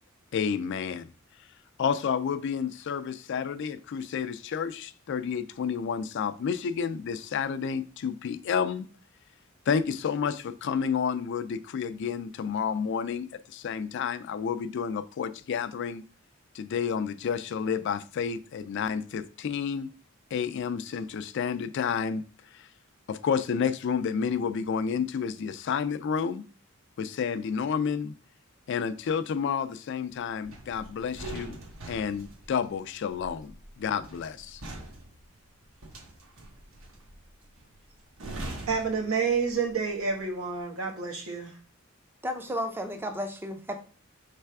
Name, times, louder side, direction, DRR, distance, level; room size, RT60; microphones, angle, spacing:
voice 1, 0.3-1.1 1.8-8.9 9.7-16.0 16.5-19.9 20.3-22.2 22.5-22.7 23.1-26.4 27.0-28.1 28.7-31.6 31.9-34.6, left 6 dB, 55° left, 0.3 m, -30 dB
sound 1, 30.4-39.8 40.1-40.4, right 1 dB, 70° right, 1.0 m, -43 dB
voice 2, 38.7-41.5, right 5 dB, 90° right, 1.2 m, -29 dB
voice 3, 42.2-43.8, equal, 10° right, 0.5 m, -33 dB
3.3 x 3.2 x 4.7 m
head